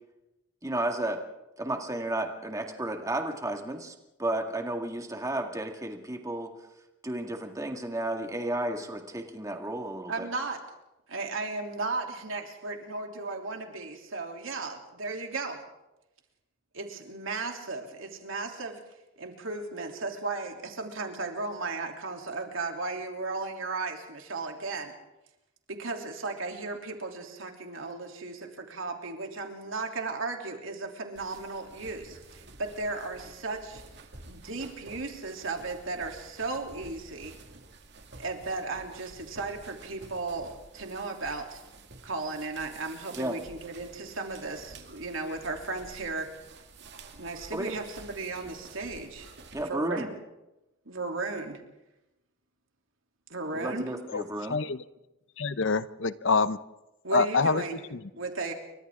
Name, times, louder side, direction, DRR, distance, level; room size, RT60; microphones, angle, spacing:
voice 1, 0.6-1.2 1.6-3.9 4.2-6.5 7.0-10.3 43.1-43.4 47.5-47.7 49.5-50.1 53.5-54.6, right 1 dB, 15° right, 3 dB, 2.0 m, -32 dB
voice 2, 10.1-10.6 11.1-15.6 16.7-18.8 19.2-25.0 25.7-33.8 34.2-37.4 38.2-41.6 42.0-46.3 47.2-49.3 49.6-50.2 50.8-51.6 53.3-53.9 57.0-58.5, right 3 dB, 85° right, 2 dB, 3.3 m, -35 dB
sound 1, 31.1-49.6, right 3 dB, 60° right, 2.3 m, -50 dB
voice 3, 55.4-56.6 57.1-57.6, left 4 dB, 65° left, 15 dB, 0.7 m, -25 dB
30.0 x 24.0 x 3.8 m, 0.96 s
head